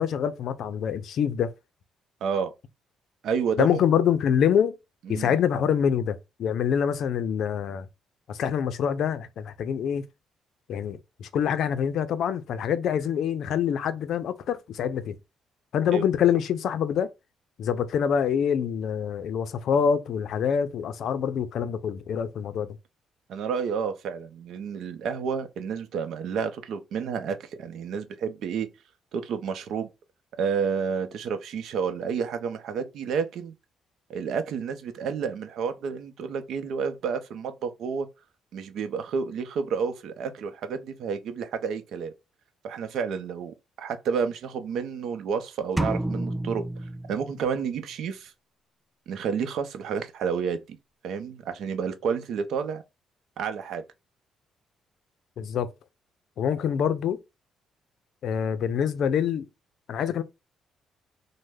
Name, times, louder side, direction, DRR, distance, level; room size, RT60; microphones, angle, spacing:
voice 1, 0.0-1.5 3.6-4.7 5.1-7.9 8.3-10.0 10.7-15.2 15.7-17.1 17.6-22.7 55.4-55.7 56.4-57.2 58.2-59.5 59.9-60.2, left 8 dB, 70° left, 0.4 m, -25 dB
voice 2, 2.2-2.5 3.2-3.8 5.1-5.4 15.9-16.0 23.3-28.7 29.1-29.9 30.4-33.5 34.1-38.1 38.5-42.1 42.6-46.6 47.1-48.3 49.1-50.8 51.0-52.8 53.4-53.8, right 6 dB, 75° right, 0.6 m, -30 dB
sound 1, 45.8-47.7, right 1 dB, 10° right, 0.3 m, -30 dB
3.1 x 2.1 x 3.3 m
cardioid pair, 90°, 0 cm